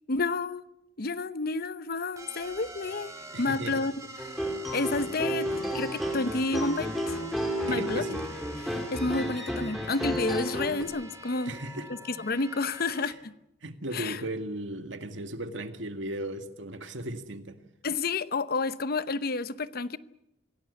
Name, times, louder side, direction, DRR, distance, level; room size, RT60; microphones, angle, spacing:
voice 1, 0.1-0.6 1.0-3.9 4.2-4.3 4.7-7.2 7.7-8.0 8.6-11.5 12.2-13.3 13.9-14.2 17.8-20.0, left 3 dB, 55° left, 0.8 m, -30 dB
sound 1, 2.2-13.1, right 1 dB, 15° right, 2.8 m, -45 dB
voice 2, 3.3-3.8 7.7-8.2 11.5-11.9 13.6-17.6, right 1 dB, 80° right, 2.0 m, -36 dB
sound 2, 4.2-10.8, equal, ahead, 3.4 m, -32 dB
25.5 x 17.5 x 8.3 m
head